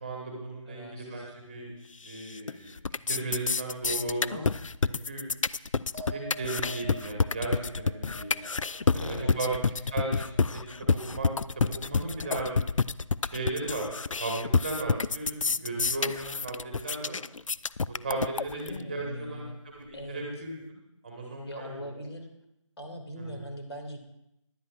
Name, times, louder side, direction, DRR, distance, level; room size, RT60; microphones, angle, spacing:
voice 1, 0.0-1.7 2.0-2.8 3.1-4.5 4.8-5.3 6.1-8.4 8.9-9.5 9.9-10.6 10.9-12.5 13.2-13.9 14.2-17.2 17.9-22.0 23.2-23.4, right 2 dB, 15° right, -1 dB, 1.4 m, -36 dB
voice 2, 0.7-1.3 8.8-9.8 18.5-19.6 19.9-20.2 21.5-22.3 22.8-24.0, equal, 50° left, 3 dB, 2.3 m, -41 dB
sound 1, 2.1-2.5 2.8-18.8, left 4 dB, 70° left, 0.4 m, -28 dB
sound 2, 5.9-12.6 12.9-13.5, right 2 dB, 5° left, 2.1 m, -49 dB
18.5 x 11.5 x 2.4 m, 0.84 s
figure-of-eight pair, 165°, 17 cm